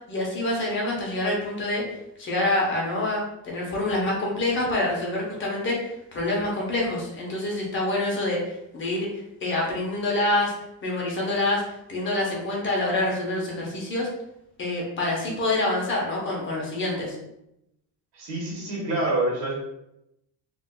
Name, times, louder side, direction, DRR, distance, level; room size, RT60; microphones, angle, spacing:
voice 1, 0.1-9.1 9.4-10.5 10.8-14.1 14.6-17.2, left 2 dB, 30° left, -2 dB, 0.7 m, -26 dB
voice 2, 18.1-19.5, right 2 dB, 80° right, -3 dB, 1.4 m, -26 dB
3.6 x 2.4 x 2.3 m, 0.83 s
cardioid pair, 175°, 40 cm